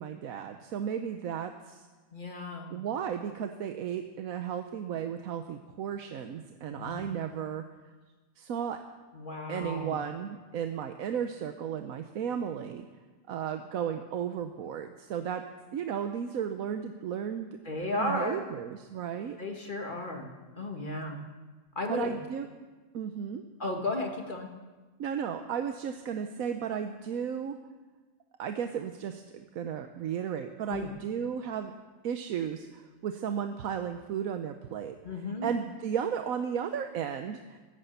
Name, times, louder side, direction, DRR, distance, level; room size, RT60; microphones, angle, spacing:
voice 1, 0.0-1.9 2.7-7.6 8.4-8.8 9.5-12.9 13.3-15.4 15.7-17.5 17.9-19.4 21.9-22.5 22.9-23.4 25.0-27.5 28.4-31.7 32.0-35.0 35.4-37.6, right 8 dB, 85° right, 7 dB, 1.2 m, -34 dB
voice 2, 2.1-2.8 6.7-7.2 9.1-10.0 17.7-18.4 19.4-20.3 20.6-21.2 21.8-22.2 23.6-24.5 30.7-30.9 35.0-35.5, left 2 dB, 35° left, 2 dB, 1.9 m, -34 dB
15.0 x 10.0 x 8.0 m, 1.3 s
omnidirectional pair, 1.4 m